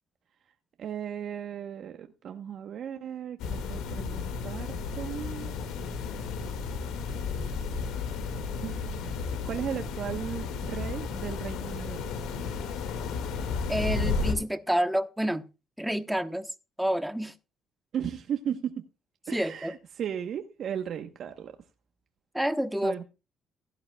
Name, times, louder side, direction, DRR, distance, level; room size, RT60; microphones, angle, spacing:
voice 1, 0.8-5.6 8.6-9.2 9.4-12.0 17.9-18.8 19.3-21.6 22.8-23.0, right 8 dB, 60° right, 1.1 m, -36 dB
sound 1, 3.4-14.3, left 4 dB, 80° left, 2.0 m, -33 dB
voice 2, 13.7-15.4 15.8-16.5 16.8-17.3 19.3-19.7 22.3-23.0, equal, 5° right, 1.1 m, -28 dB
16.5 x 11.5 x 2.3 m
cardioid pair, 85°, 0 cm